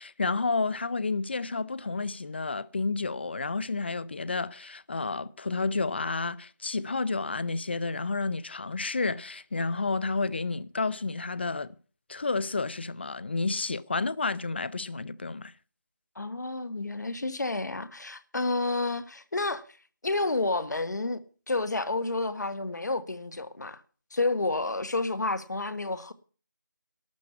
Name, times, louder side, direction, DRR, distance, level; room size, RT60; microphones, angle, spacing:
voice 1, 0.0-11.7 12.1-15.5, left 3 dB, 35° left, 0.6 m, -30 dB
voice 2, 16.1-19.6 20.0-21.2 21.5-23.8 24.1-26.1, left 2 dB, 65° left, 1.5 m, -30 dB
12.5 x 7.4 x 9.6 m
figure-of-eight pair, 170°, 10 cm